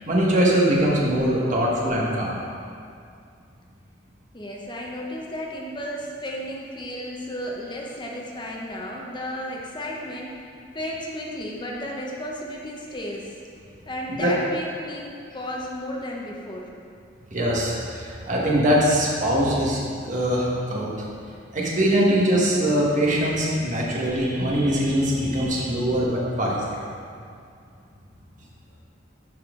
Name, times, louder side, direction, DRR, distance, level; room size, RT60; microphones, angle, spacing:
voice 1, 0.0-2.4 14.1-14.3 17.3-19.8 20.0-20.9 21.5-26.8, equal, 45° right, -4 dB, 1.5 m, -22 dB
voice 2, 4.3-10.4 10.7-13.3 13.9-15.1 15.3-16.7, equal, 25° left, -2 dB, 0.8 m, -33 dB
12.0 x 4.3 x 3.8 m, 2.4 s
head